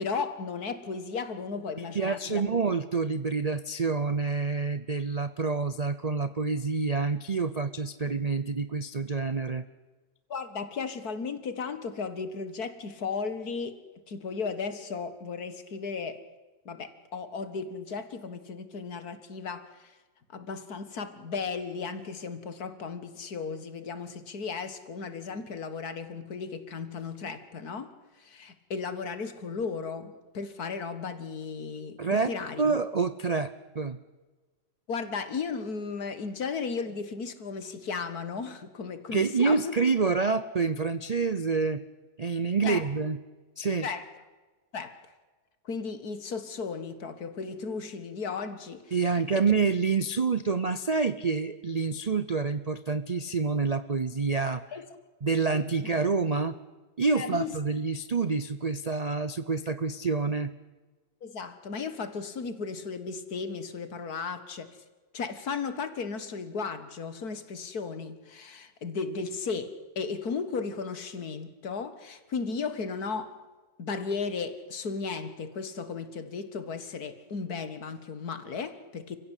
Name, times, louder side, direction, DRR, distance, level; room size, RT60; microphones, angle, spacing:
voice 1, 0.0-2.4 10.3-13.8 14.1-16.2 16.7-19.9 20.3-27.9 28.2-32.0 32.3-32.6 34.9-39.7 42.6-42.9 43.8-44.0 44.7-45.0 45.7-49.5 54.7-54.9 55.4-55.5 57.1-57.5 61.2-64.7 65.1-73.4 73.8-79.2, left 5 dB, 65° left, 2.1 m, -35 dB
voice 2, 1.8-9.6 32.0-32.3 32.6-34.0 39.1-41.8 42.2-43.2 43.6-43.9 48.9-54.6 55.2-56.6 57.0-60.5, right 4 dB, 50° right, 0.4 m, -27 dB
29.0 x 15.5 x 8.3 m
omnidirectional pair, 1.8 m